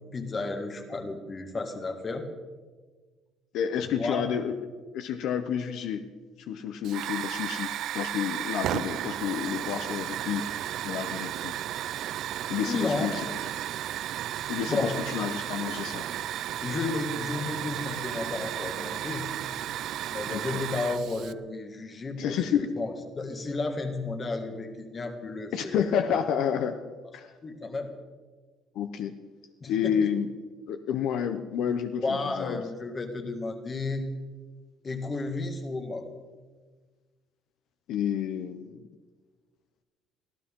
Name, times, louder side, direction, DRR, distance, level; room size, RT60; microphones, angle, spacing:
voice 1, 0.1-2.2 4.0-4.3 12.7-13.2 14.7-15.0 16.6-19.3 20.1-25.8 27.4-27.9 29.6-30.1 31.7-34.1 34.8-36.1, left 3 dB, 20° left, 5 dB, 1.7 m, -33 dB
voice 2, 3.5-4.5 4.9-6.0 6.4-11.5 12.5-13.3 14.5-16.0 20.3-20.6 22.2-22.7 25.5-26.8 27.1-27.3 28.7-29.1 29.7-30.3 30.7-32.6 37.9-38.8, left 8 dB, 60° left, 8 dB, 0.9 m, -30 dB
Hiss / Fire, 6.8-21.3, right 12 dB, 55° right, 0.5 m, -34 dB
24.0 x 15.5 x 3.8 m, 1.4 s
cardioid pair, 170°, 0 cm